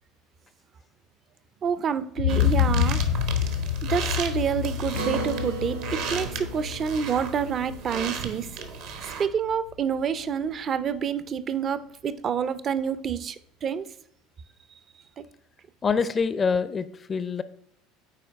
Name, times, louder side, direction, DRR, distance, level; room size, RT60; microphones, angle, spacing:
voice 1, 1.6-3.0 3.9-8.6 9.2-13.4 13.6-13.9, right 7 dB, 40° right, 15 dB, 0.5 m, -28 dB
sound 1, 2.2-10.0 10.5-10.6, left 9 dB, 85° left, 0.9 m, -28 dB
sound 2, 2.3-9.2, right 6 dB, 65° right, 1.1 m, -36 dB
Acoustic guitar, 4.9-9.6, right 3 dB, 85° right, 1.2 m, -37 dB
voice 2, 15.8-17.4, left 5 dB, 30° left, 14 dB, 0.5 m, -25 dB
9.0 x 4.5 x 3.5 m, 0.72 s
figure-of-eight pair, 70°, 0 cm